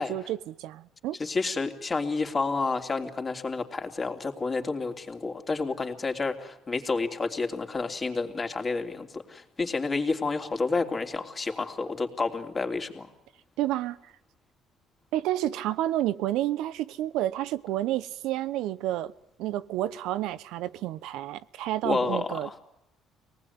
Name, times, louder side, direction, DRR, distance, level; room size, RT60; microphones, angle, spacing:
voice 1, 0.0-1.2 13.6-14.1 15.1-19.1 19.4-22.6, right 13 dB, 80° right, 0.9 m, -30 dB
voice 2, 1.2-13.1 21.8-22.5, left 3 dB, 30° left, 3.2 m, -30 dB
25.0 x 19.0 x 9.6 m
cardioid pair, 100°, 0 cm